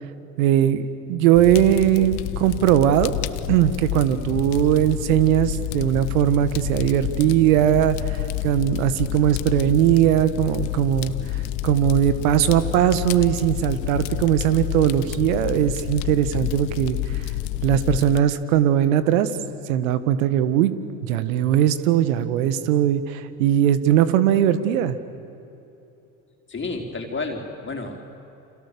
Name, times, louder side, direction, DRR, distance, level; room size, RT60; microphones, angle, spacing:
voice 1, 0.4-3.1 3.5-11.1 11.6-17.2 17.6-19.3 19.7-20.7 21.0-25.0, right 11 dB, 70° right, 13 dB, 1.8 m, -20 dB
Fire, 1.3-18.2, left 17 dB, 60° left, 1.0 m, -29 dB
voice 2, 26.5-28.0, left 3 dB, 25° left, 2 dB, 4.3 m, -30 dB
29.5 x 27.5 x 7.0 m, 2.9 s
hypercardioid pair, 75°, 42 cm